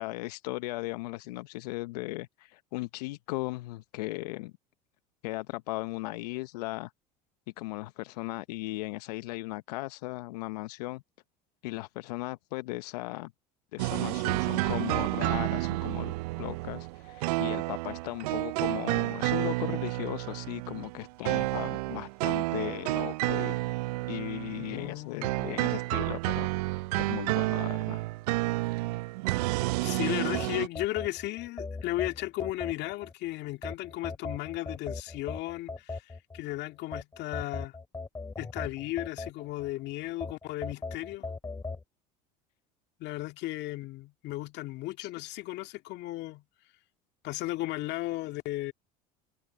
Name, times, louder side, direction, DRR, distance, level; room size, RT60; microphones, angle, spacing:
voice 1, 0.0-4.5 5.2-6.9 7.6-11.0 11.6-13.3 13.7-16.1 16.4-23.6 24.1-28.0 45.0-45.1, left 20 dB, 75° left, 0.8 m, -37 dB
sound 1, 13.8-24.9 25.2-30.7, right 22 dB, 75° right, 0.5 m, -30 dB
voice 2, 24.6-25.4 29.8-37.8 38.4-41.3 43.0-46.4 47.2-48.7, left 17 dB, 60° left, 2.2 m, -35 dB
sound 2, 30.3-33.1 33.6-36.4 36.9-39.7 40.2-41.8, left 3 dB, 15° left, 7.7 m, -38 dB
hypercardioid pair, 80°, 20 cm